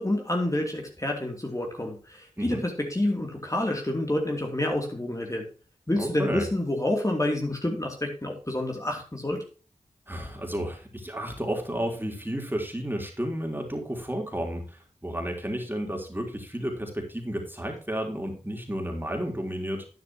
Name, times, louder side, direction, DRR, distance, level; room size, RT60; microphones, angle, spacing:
voice 1, 0.0-5.5 5.9-9.4, left 1 dB, 25° left, 1 dB, 3.0 m, -28 dB
voice 2, 6.0-6.5 10.1-19.9, equal, 15° right, 2 dB, 3.7 m, -32 dB
11.5 x 9.7 x 3.0 m, 0.37 s
cardioid pair, 45°, 14 cm